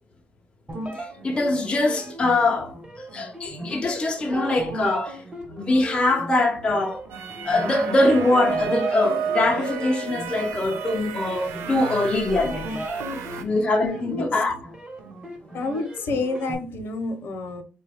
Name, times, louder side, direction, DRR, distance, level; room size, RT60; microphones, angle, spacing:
sound 1, 0.7-16.5, right 1 dB, 20° right, 1.0 m, -36 dB
voice 1, 0.9-2.7 3.1-5.2 5.5-7.0 7.4-12.8 13.4-14.5, left 2 dB, 25° left, 0.5 m, -23 dB
sound 2, 7.1-13.4, right 6 dB, 80° right, 0.6 m, -31 dB
voice 2, 15.5-17.6, left 3 dB, 60° left, 0.8 m, -28 dB
3.9 x 2.3 x 3.4 m
cardioid pair, 120°, 4 cm